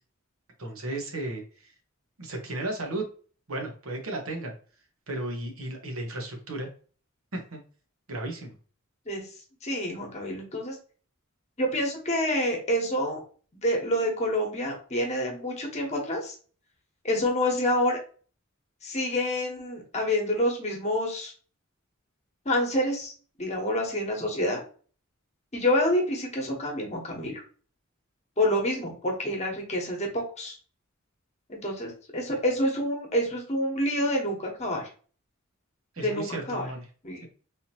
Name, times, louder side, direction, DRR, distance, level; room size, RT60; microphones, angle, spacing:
voice 1, 0.6-1.7 2.2-3.0 3.5-4.5 5.1-6.7 7.3-7.6 8.1-8.5 35.9-36.9, right 2 dB, 85° right, 2 dB, 1.1 m, -34 dB
voice 2, 9.6-10.8 11.6-13.2 13.6-16.3 17.0-18.0 18.8-21.3 22.4-23.1 23.4-24.6 25.5-27.4 28.4-30.6 31.5-34.9 36.0-36.7 37.0-37.3, left 1 dB, 35° left, 1 dB, 1.1 m, -27 dB
3.4 x 2.8 x 2.8 m, 0.40 s
head